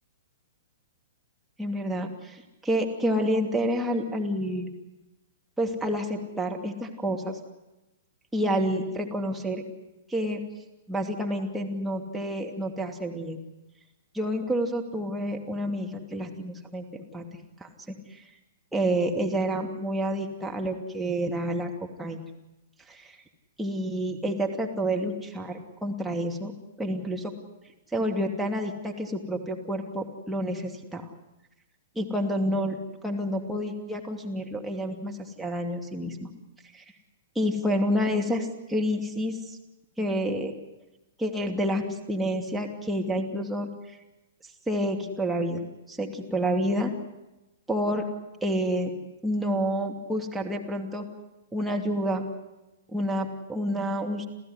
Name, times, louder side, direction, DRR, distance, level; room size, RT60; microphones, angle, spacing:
voice 1, 1.6-4.7 5.6-7.4 8.3-9.6 10.1-10.4 10.9-13.4 14.1-16.8 17.1-17.2 17.6-18.0 18.7-21.7 22.0-22.2 22.9-23.0 23.6-26.5 26.8-27.3 27.9-31.0 32.0-32.7 33.0-36.3 36.7-36.8 37.3-39.4 40.0-40.5 41.2-43.7 44.7-46.9 47.7-48.1 48.4-48.9 49.2-51.0 51.5-52.3 52.9-54.3, equal, 5° right, 0 dB, 2.7 m, -29 dB
29.0 x 15.0 x 9.8 m, 1.0 s
figure-of-eight pair, 110°, 0 cm